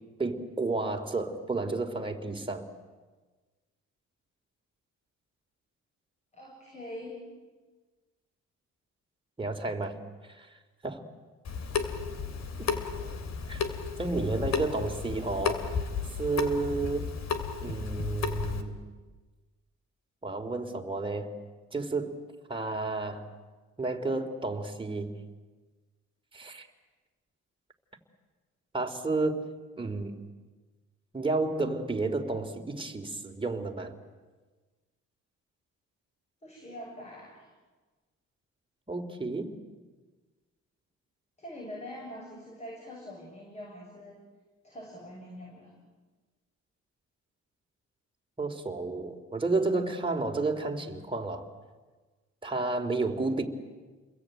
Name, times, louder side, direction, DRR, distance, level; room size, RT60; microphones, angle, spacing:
voice 1, 0.2-2.6 9.4-9.9 10.3-10.5 10.8-11.0 13.5-13.6 14.0-15.8 16.2-17.1 17.6-18.7 20.2-21.3 21.7-22.2 22.5-23.2 23.8-25.1 26.3-26.7 28.7-29.4 29.8-30.2 31.1-33.9 38.9-39.5 48.4-51.5 52.4-53.4, right 3 dB, 15° right, 3 dB, 3.4 m, -31 dB
voice 2, 6.3-7.2 12.6-12.9 36.4-37.5 41.4-44.2 44.6-45.7, left 1 dB, 20° left, -1 dB, 7.4 m, -44 dB
Water tap faucet / Sink (filling or washing) / Drip, 11.4-18.6, left 6 dB, 60° left, 3.0 m, -33 dB
29.5 x 22.0 x 9.2 m, 1.3 s
cardioid pair, 90°, 30 cm